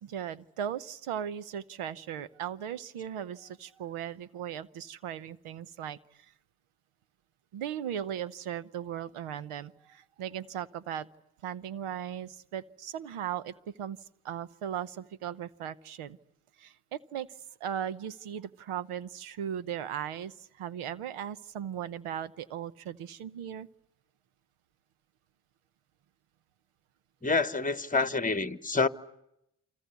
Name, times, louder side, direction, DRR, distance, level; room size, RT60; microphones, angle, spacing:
voice 1, 0.0-6.3 7.5-11.1 11.4-14.0 14.2-16.2 16.6-17.3 17.6-23.7, right 9 dB, 85° right, 0.9 m, -37 dB
voice 2, 27.2-28.9, left 4 dB, 15° left, 1.3 m, -27 dB
29.0 x 24.0 x 8.3 m
supercardioid pair, 45°, 49 cm